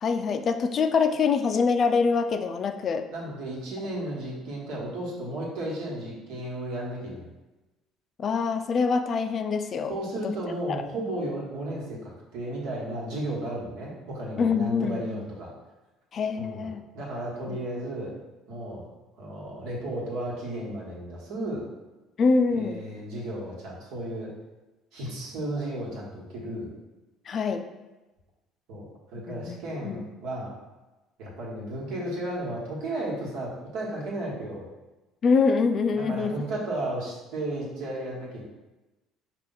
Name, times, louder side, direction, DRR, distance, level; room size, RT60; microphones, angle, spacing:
voice 1, 0.0-3.1 8.2-10.0 10.2-10.3 10.7-10.8 14.4-15.1 16.1-16.8 17.5-17.6 22.2-22.8 27.3-27.6 29.3-29.6 29.8-30.1 35.2-36.3, left 5 dB, 45° left, 8 dB, 0.3 m, -25 dB
voice 2, 3.1-7.3 9.9-15.5 16.4-18.1 18.5-18.9 19.2-21.7 22.5-24.3 24.9-26.7 28.7-30.5 31.2-34.7 36.0-38.5, right 1 dB, 70° right, -4 dB, 1.4 m, -34 dB
4.9 x 2.4 x 3.9 m, 1.1 s
hypercardioid pair, 70°, 0 cm